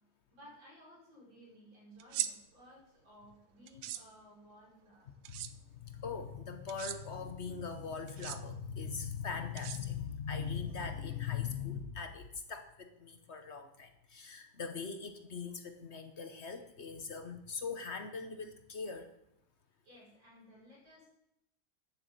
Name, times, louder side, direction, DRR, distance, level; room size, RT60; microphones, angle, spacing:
voice 1, 0.3-5.1 19.8-21.1, equal, 60° right, -5 dB, 6.1 m, -57 dB
sound 1, 2.0-2.3 3.7-4.0 5.2-5.5 6.7-7.0 8.1-8.4 9.6-10.2, right 12 dB, 75° right, 1.5 m, -38 dB
voice 2, 5.1-19.1, left 6 dB, 50° left, 7 dB, 0.8 m, -41 dB
10.5 x 7.3 x 8.0 m, 0.81 s
omnidirectional pair, 2.3 m